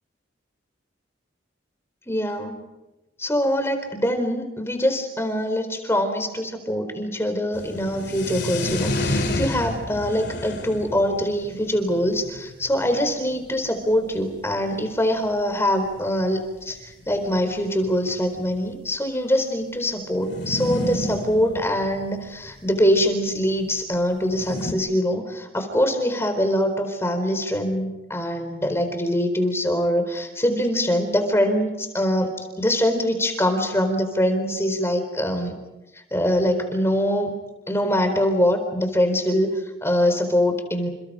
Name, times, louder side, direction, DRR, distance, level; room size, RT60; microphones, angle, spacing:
voice 1, 2.1-2.6 3.2-16.8 17.1-32.3 32.6-35.5 36.1-37.3 37.7-40.9, equal, 15° left, 7 dB, 4.2 m, -23 dB
sound 1, 7.5-13.7 14.3-14.4 14.6-14.7 14.9-15.1 16.0-16.1 16.3-16.4 17.2-18.7 20.2-22.8 24.2-24.7, left 1 dB, 60° left, 3.1 m, -30 dB
29.5 x 29.0 x 5.1 m, 1.0 s
head